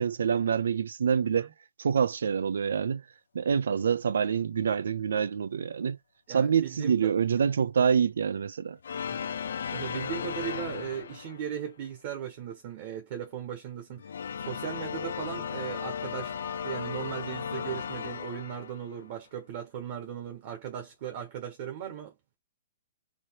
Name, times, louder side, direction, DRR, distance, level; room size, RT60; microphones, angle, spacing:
voice 1, 0.0-1.5 1.8-3.0 3.3-6.0 6.3-8.8, right 7 dB, 90° right, 0.5 m, -26 dB
voice 2, 6.3-6.9 9.2-9.3 9.7-14.1 14.4-22.1, right 9 dB, 30° right, 1.2 m, -37 dB
sound 1, 8.8-11.6 13.9-19.1, left 7 dB, 80° left, 0.5 m, -36 dB
sound 2, 14.8-18.9, left 10 dB, 15° left, 0.4 m, -48 dB
3.1 x 2.9 x 4.5 m
hypercardioid pair, 180°, 0 cm